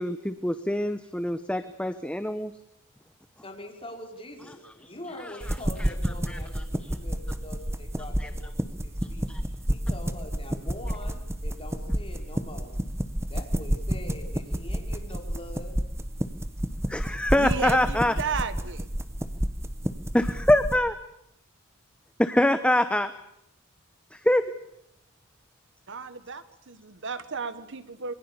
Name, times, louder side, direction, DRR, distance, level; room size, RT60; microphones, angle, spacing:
voice 1, 0.0-2.5 5.2-5.9 6.3-6.4 8.2-8.3 9.3-9.4 16.9-18.1 20.1-20.9 22.2-23.1 24.1-24.4, left 1 dB, 5° left, 10 dB, 0.9 m, -25 dB
voice 2, 3.4-12.8 13.3-15.9, left 1 dB, 25° left, 2 dB, 5.1 m, -43 dB
sound 1, 5.4-20.8, equal, 10° right, 1.3 m, -30 dB
voice 3, 17.4-18.9 25.9-28.1, right 4 dB, 60° right, 13 dB, 1.5 m, -34 dB
26.0 x 23.5 x 7.1 m, 0.79 s
head